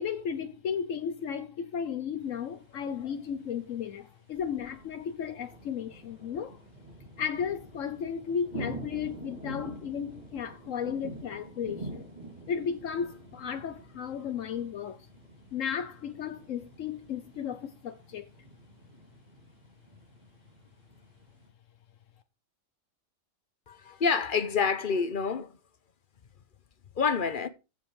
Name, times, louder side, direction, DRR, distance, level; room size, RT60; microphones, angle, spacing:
voice 1, 0.0-6.6 7.2-12.1 12.5-15.1 15.5-18.3, left 7 dB, 75° left, 1.2 m, -34 dB
sound 1, 2.2-21.5, right 2 dB, 30° right, 3.1 m, -47 dB
voice 2, 23.7-25.5 27.0-27.5, left 5 dB, 45° left, 0.9 m, -27 dB
14.5 x 5.6 x 4.8 m
omnidirectional pair, 1.4 m